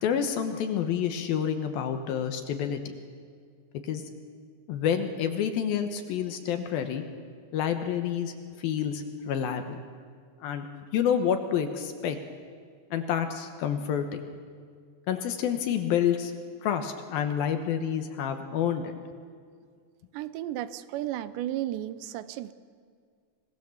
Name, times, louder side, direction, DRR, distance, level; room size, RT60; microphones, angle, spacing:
voice 1, 0.0-3.0 3.8-4.0 4.7-7.0 7.5-9.8 10.4-10.7 10.9-12.2 12.9-14.1 15.1-16.3 16.6-18.9, left 8 dB, 70° left, 7 dB, 2.6 m, -28 dB
voice 2, 20.1-22.5, right 13 dB, 85° right, 14 dB, 2.9 m, -33 dB
25.5 x 19.0 x 7.1 m, 2.1 s
omnidirectional pair, 5.0 m